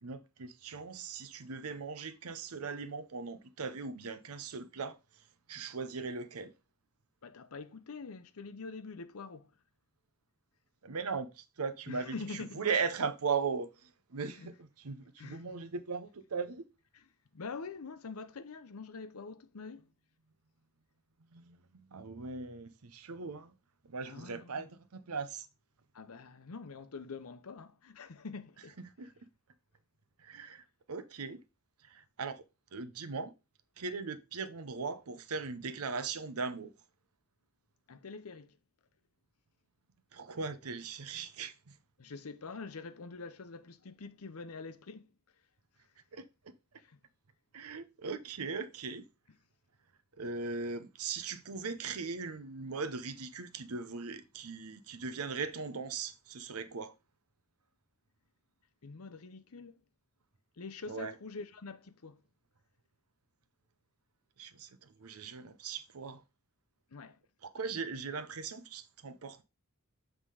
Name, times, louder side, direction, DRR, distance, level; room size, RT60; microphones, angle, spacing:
voice 1, 0.0-5.0 5.5-6.5 10.8-16.6 21.3-23.5 23.9-25.5 28.8-29.1 30.2-31.4 31.8-32.4 32.7-33.3 33.8-36.7 40.1-41.7 46.1-46.5 47.5-49.0 50.2-56.9 60.9-61.1 64.4-66.2 67.4-69.4, right 5 dB, 85° right, 0.7 m, -39 dB
voice 2, 7.2-9.5 11.9-12.7 14.4-14.5 15.2-15.6 16.9-19.9 24.0-24.7 25.9-28.8 37.9-38.6 42.0-45.1 46.8-47.0 58.8-59.8 60.6-62.2 66.9-67.2, left 4 dB, 80° left, 0.7 m, -45 dB
7.5 x 3.6 x 4.8 m
head